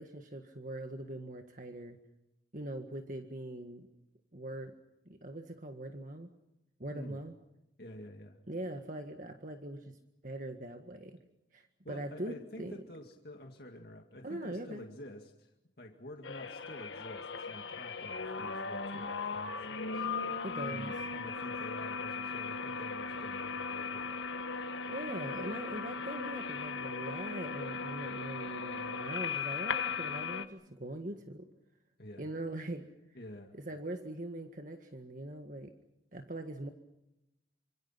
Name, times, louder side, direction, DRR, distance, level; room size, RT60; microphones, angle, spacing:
voice 1, 0.0-2.0 2.5-3.9 4.3-4.8 5.1-6.3 6.8-7.3 8.5-10.0 10.2-11.2 11.5-12.8 14.2-14.8 20.4-20.9 24.9-31.5 32.2-32.9 33.5-35.7 36.1-36.7, right 1 dB, 45° right, 5 dB, 1.8 m, -42 dB
voice 2, 7.8-8.4 11.8-20.1 20.6-24.1 32.0-32.3 33.1-33.6, left 1 dB, 55° left, 2 dB, 2.2 m, -49 dB
sound 1, 16.2-30.4, left 5 dB, 80° left, 1.7 m, -38 dB
28.0 x 26.0 x 5.9 m, 0.90 s
head